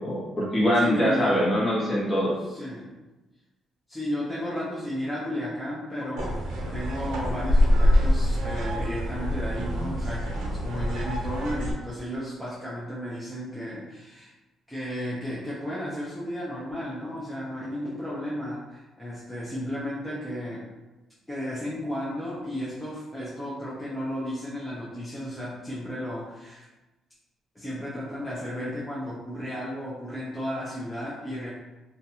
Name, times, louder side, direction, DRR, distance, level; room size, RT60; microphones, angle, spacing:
voice 1, 0.0-2.3, equal, 30° left, -6 dB, 1.1 m, -23 dB
voice 2, 0.7-1.5 2.4-2.9 3.9-14.3 14.7-20.7 21.3-26.6 27.5-31.5, equal, 5° left, -8 dB, 0.7 m, -33 dB
sound 1, 6.2-11.7, equal, 80° right, 0.7 m, -25 dB
2.5 x 2.3 x 2.8 m, 1.1 s
cardioid pair, 90°, 0 cm